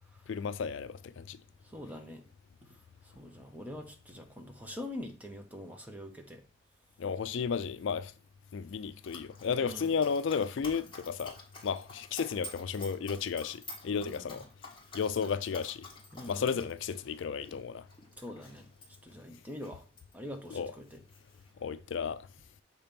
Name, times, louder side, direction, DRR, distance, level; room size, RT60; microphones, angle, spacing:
voice 1, 0.3-1.4 7.0-8.1 8.5-11.3 11.6-14.4 14.9-15.8 16.3-17.8 20.5-20.7 21.6-22.2, left 6 dB, 70° left, 0.4 m, -33 dB
voice 2, 1.7-2.2 3.1-6.4 9.6-9.9 13.9-14.4 16.1-16.6 18.2-18.7 19.0-19.8 20.1-21.0, left 1 dB, 10° right, 0.8 m, -44 dB
Dog, 9.0-20.1 20.4-21.5, left 2 dB, 25° left, 1.3 m, -50 dB
6.6 x 2.9 x 5.1 m
head